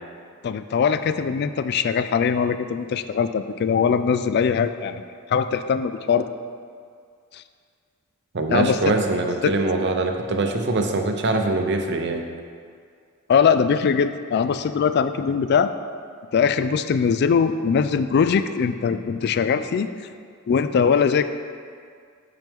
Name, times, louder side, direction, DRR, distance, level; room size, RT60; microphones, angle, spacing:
voice 1, 0.4-5.0 5.3-6.3 7.3-7.4 8.5-8.9 9.4-9.5 13.3-15.7 16.3-19.9 20.5-21.2, left 6 dB, 50° left, 11 dB, 0.3 m, -21 dB
voice 2, 8.3-12.2, right 2 dB, 55° right, 4 dB, 0.7 m, -23 dB
8.9 x 5.8 x 3.6 m, 2.1 s
head